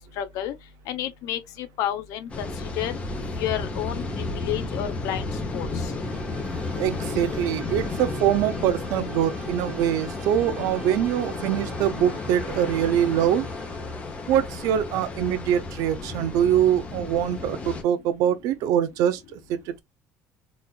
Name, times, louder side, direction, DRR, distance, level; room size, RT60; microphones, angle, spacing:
voice 1, 0.2-0.5 0.9-2.5 2.7-3.0 3.4-5.9, left 11 dB, 70° left, 0.7 m, -31 dB
sound 1, 2.3-17.8, left 3 dB, 20° left, 0.7 m, -33 dB
sound 2, 5.8-14.2, right 4 dB, 20° right, 0.5 m, -46 dB
voice 2, 6.8-13.5 14.3-19.8, right 10 dB, 70° right, 0.6 m, -24 dB
4.1 x 2.5 x 2.2 m
cardioid pair, 160°, 6 cm